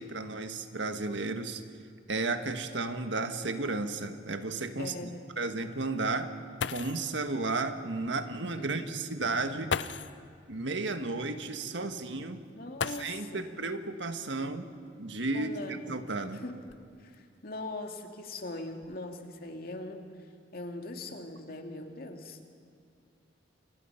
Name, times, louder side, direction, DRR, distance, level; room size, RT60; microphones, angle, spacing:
voice 1, 0.0-1.6 2.1-4.9 5.4-6.3 6.7-9.8 10.5-12.5 12.9-14.7 15.0-16.4, right 3 dB, 80° right, 8 dB, 1.6 m, -33 dB
voice 2, 4.8-5.3 8.6-9.0 12.5-13.5 15.3-15.9 16.3-16.6 17.0-20.0 20.5-22.4, left 2 dB, 55° left, 4 dB, 2.3 m, -41 dB
sound 1, 6.3-6.4 6.6-7.2 8.4-8.5 9.7-10.3 12.7-13.5 14.9-15.0 15.7-17.2 17.8-18.2 18.6-19.0, left 6 dB, 75° left, 0.6 m, -37 dB
29.0 x 24.5 x 5.8 m, 2.3 s
head